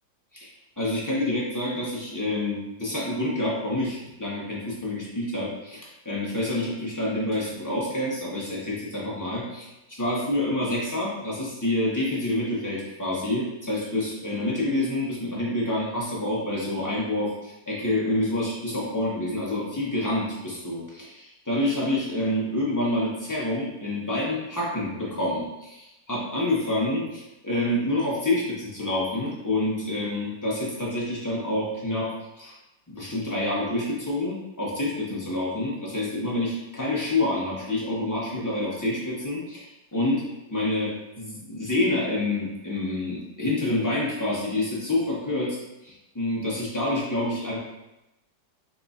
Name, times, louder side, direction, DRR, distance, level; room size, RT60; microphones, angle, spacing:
voice 1, 0.8-32.5 32.9-40.2 40.5-45.6 45.8-47.6, left 1 dB, 25° left, -6 dB, 0.4 m, -27 dB
4.6 x 4.0 x 2.4 m, 0.94 s
omnidirectional pair, 2.0 m